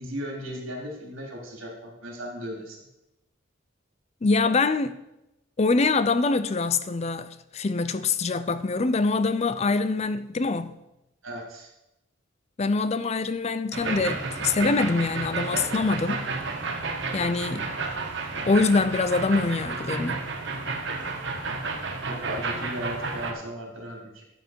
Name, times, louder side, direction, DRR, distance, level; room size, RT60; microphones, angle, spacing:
voice 1, 0.0-2.9 11.2-11.7 22.0-24.2, equal, 80° right, 3.8 m, -36 dB
voice 2, 4.2-5.0 5.6-10.8 12.6-16.2 17.1-17.7 18.5-20.3, left 3 dB, 30° left, 0.4 m, -24 dB
sound 1, 13.7-23.3, right 3 dB, 60° right, 1.6 m, -31 dB
12.0 x 7.9 x 4.6 m
head